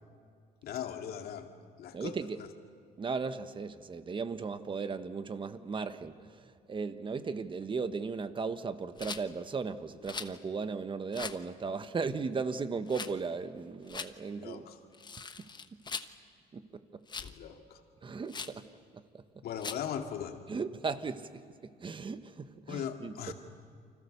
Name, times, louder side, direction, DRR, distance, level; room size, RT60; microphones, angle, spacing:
voice 1, 0.6-1.5 1.8-2.5 14.3-14.8 17.2-17.8 19.4-20.4 22.7-23.3, left 9 dB, 65° left, 5 dB, 2.4 m, -39 dB
voice 2, 1.9-2.4 3.0-14.6 16.5-17.0 18.0-18.7 19.1-19.2 20.5-21.4 21.8-23.3, right 4 dB, 30° right, 11 dB, 1.4 m, -36 dB
Rattle, 9.0-9.2 10.0-10.4 11.1-11.4 12.9-13.1 13.9-14.1 14.9-16.1 17.1-17.4 18.3-18.6 19.6-19.9, left 5 dB, 25° left, 1.1 m, -40 dB
29.5 x 25.5 x 7.0 m, 2.2 s
cardioid pair, 110°, 17 cm